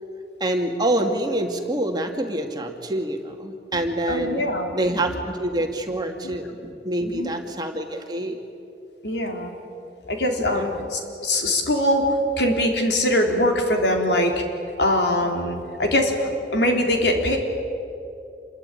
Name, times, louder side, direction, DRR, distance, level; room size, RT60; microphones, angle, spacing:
voice 1, 0.4-4.4 4.7-8.4 10.4-10.9, right 1 dB, 25° right, 3 dB, 2.3 m, -26 dB
voice 2, 4.1-4.7 7.0-7.3 9.0-9.5 10.1-14.4 14.8-17.4, left 1 dB, 80° left, 2 dB, 4.0 m, -22 dB
27.5 x 22.5 x 9.2 m, 2.6 s
head